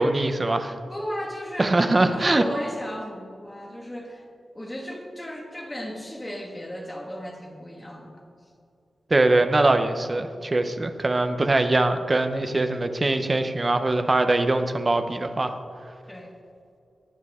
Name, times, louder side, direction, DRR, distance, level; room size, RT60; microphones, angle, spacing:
voice 1, 0.0-0.8 1.6-2.4 9.1-15.5, right 2 dB, 25° right, 8 dB, 0.7 m, -22 dB
voice 2, 0.9-4.3 4.5-8.2 16.1-16.3, equal, 15° left, 0 dB, 1.8 m, -35 dB
18.5 x 8.9 x 3.6 m, 2.4 s
wide cardioid pair, 160°, 0 cm